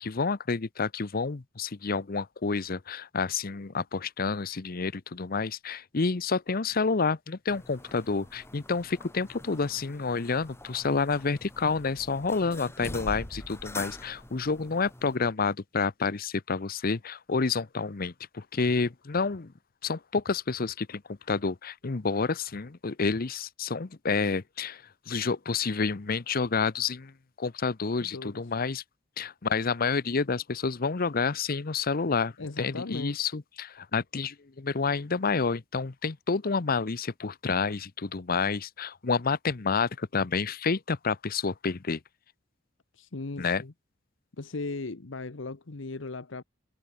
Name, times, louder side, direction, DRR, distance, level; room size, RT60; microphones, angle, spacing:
voice 1, 0.0-19.5 19.8-27.1 27.4-28.8 29.2-42.0 43.4-43.6, left 4 dB, 50° left, 0.8 m, -29 dB
sound 1, 7.5-15.2, left 1 dB, 15° left, 3.1 m, -44 dB
voice 2, 28.0-28.4 32.4-33.3 42.9-43.7 44.4-46.4, left 3 dB, 85° left, 1.0 m, -38 dB
head